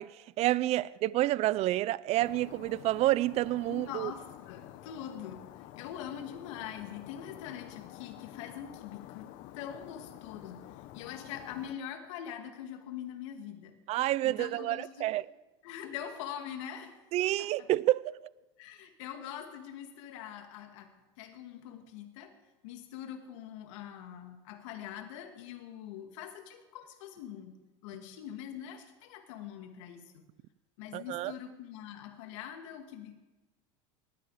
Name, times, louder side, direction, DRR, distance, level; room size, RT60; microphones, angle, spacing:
voice 1, 0.0-4.1 13.9-15.3 17.1-18.2 30.9-31.3, right 16 dB, 45° right, 0.5 m, -29 dB
sound 1, 2.2-11.8, left 14 dB, 55° left, 1.0 m, -49 dB
voice 2, 3.7-5.5 5.8-10.7 10.9-13.8 14.2-15.1 15.6-17.1 17.4-17.7 18.6-22.3 22.6-30.2 30.8-33.2, left 9 dB, 75° left, 2.4 m, -43 dB
19.5 x 13.5 x 5.1 m
supercardioid pair, 120°, 16 cm